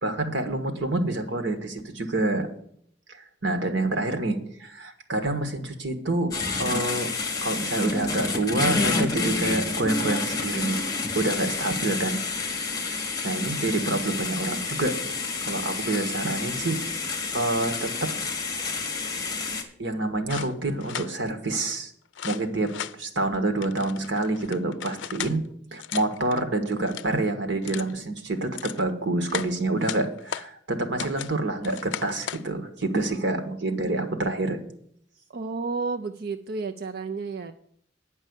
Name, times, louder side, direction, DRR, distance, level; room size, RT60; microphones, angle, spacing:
voice 1, 0.0-2.5 3.1-6.3 6.6-7.1 7.4-10.8 11.1-12.2 12.9-14.9 15.4-16.8 17.3-18.1 19.8-21.9 22.2-25.4 25.7-34.6, right 2 dB, 90° right, 7 dB, 1.5 m, -27 dB
sound 1, 6.3-19.6, left 3 dB, 20° left, 1.5 m, -29 dB
sound 2, 20.3-21.1 22.1-23.0 23.6-25.4 25.8-26.4 26.8-27.1 27.6-27.9 28.4-28.8 29.3-30.5 31.0-31.3 31.6-32.4, left 9 dB, 90° left, 0.4 m, -36 dB
voice 2, 35.3-37.5, right 4 dB, 60° right, 7 dB, 0.5 m, -31 dB
9.6 x 5.5 x 8.1 m, 0.65 s
head